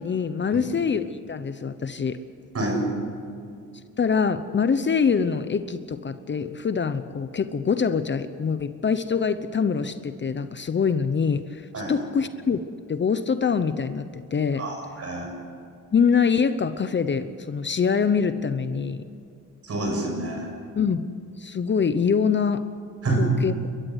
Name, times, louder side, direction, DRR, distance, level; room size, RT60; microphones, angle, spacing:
voice 1, 0.0-2.2 4.0-12.6 12.9-14.7 15.9-19.0 20.8-21.0 21.4-22.6 23.2-23.7, left 6 dB, 35° left, 11 dB, 0.9 m, -24 dB
voice 2, 14.6-15.3 19.6-20.5 23.0-23.3, right 2 dB, 45° right, 2 dB, 7.4 m, -27 dB
29.5 x 14.0 x 8.2 m, 2.3 s
cardioid pair, 105°, 33 cm